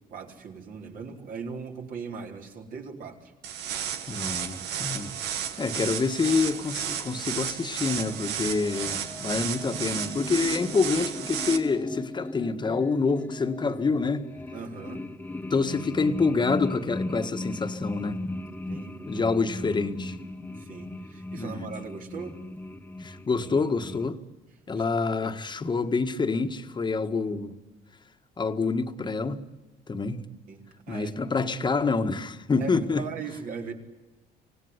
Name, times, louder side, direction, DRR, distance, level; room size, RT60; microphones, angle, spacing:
voice 1, 0.1-3.3 14.5-15.1 18.7-19.3 20.6-22.4 24.8-25.0 30.5-31.1 32.5-32.7 33.0-33.7, right 5 dB, 55° right, 4.3 m, -39 dB
sound 1, 3.4-11.6, right 9 dB, 80° right, 2.0 m, -33 dB
voice 2, 4.1-5.1 5.6-14.3 15.5-18.2 19.1-20.2 21.4-21.6 23.0-24.2 24.7-27.5 28.4-29.4 29.9-30.3 30.9-33.0, left 4 dB, 25° left, 1.8 m, -27 dB
sound 2, 8.0-24.1, left 2 dB, 10° left, 1.1 m, -38 dB
26.0 x 18.0 x 9.8 m
cardioid pair, 110°, 17 cm